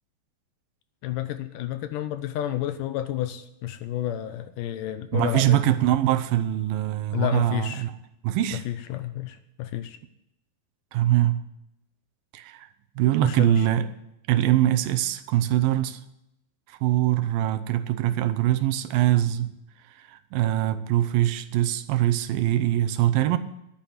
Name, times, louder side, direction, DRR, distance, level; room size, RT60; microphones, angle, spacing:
voice 1, 1.0-5.6 7.1-7.9 8.5-10.0 13.2-13.7, left 12 dB, 80° left, 2.1 m, -30 dB
voice 2, 5.1-7.9 8.2-8.6 10.9-11.4 12.3-12.7 13.0-13.9 14.3-16.0 16.7-19.5 20.0-23.4, right 13 dB, 80° right, 2.5 m, -23 dB
11.5 x 8.9 x 9.5 m
omnidirectional pair, 4.2 m